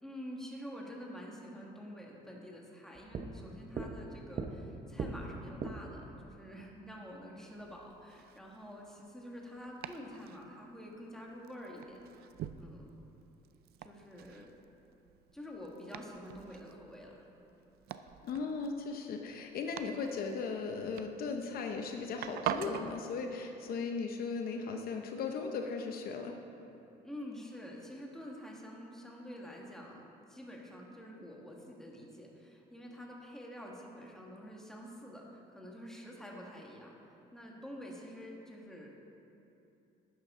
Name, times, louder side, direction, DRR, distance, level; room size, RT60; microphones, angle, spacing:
voice 1, 0.0-12.0 12.5-12.9 13.8-14.5 15.3-17.3 27.0-37.0 37.3-38.9, equal, 5° left, -2 dB, 1.6 m, -48 dB
sound 1, 2.9-6.0, right 4 dB, 40° right, 0.8 m, -40 dB
Domestic sounds home sounds, 7.4-22.9, right 10 dB, 70° right, 0.5 m, -46 dB
voice 2, 18.2-26.3, left 4 dB, 60° left, 4 dB, 0.8 m, -37 dB
12.5 x 9.1 x 3.7 m, 2.8 s
cardioid pair, 110°, 17 cm